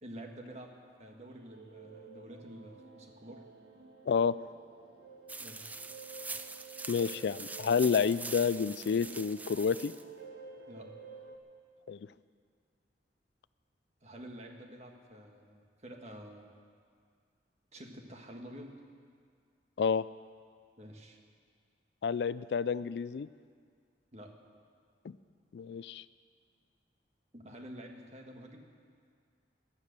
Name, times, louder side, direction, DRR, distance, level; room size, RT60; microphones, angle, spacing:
voice 1, 0.0-3.5 5.4-5.8 10.7-10.9 14.0-16.5 17.7-18.8 20.8-21.2 24.1-24.3 27.3-28.7, right 1 dB, 40° right, 2 dB, 1.7 m, -49 dB
sound 1, 1.3-11.4, right 4 dB, 65° right, 1.6 m, -52 dB
sound 2, 5.3-10.0, right 3 dB, 10° right, 0.4 m, -43 dB
voice 2, 6.9-9.9 11.9-12.0 19.8-20.0 22.0-23.3 25.0-25.2 25.5-26.0, left 6 dB, 65° left, 17 dB, 0.3 m, -29 dB
18.0 x 11.5 x 6.7 m, 2.1 s
head